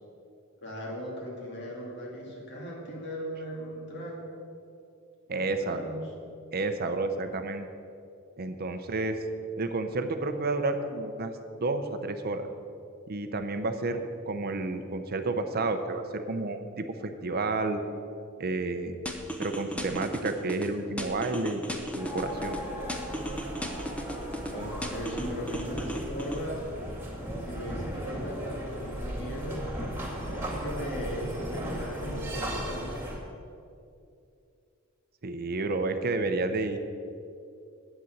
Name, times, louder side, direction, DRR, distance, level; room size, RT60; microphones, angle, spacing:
voice 1, 0.6-4.4 5.3-6.1 24.5-26.6 27.4-29.7 30.3-33.0, equal, 55° left, -2 dB, 2.5 m, -38 dB
voice 2, 5.3-5.8 6.5-7.7 8.4-9.2 9.6-11.3 11.6-12.5 13.1-17.8 18.4-18.9 19.4-21.6 21.9-22.6 35.2-36.8, right 3 dB, 45° right, 8 dB, 0.7 m, -30 dB
sound 1, 19.1-20.7 21.0-22.6 22.9-24.5 24.8-26.4, equal, 5° left, 0.9 m, -35 dB
sound 2, 22.0-33.2, equal, 10° right, 2.5 m, -36 dB
9.0 x 6.8 x 7.8 m, 2.5 s
head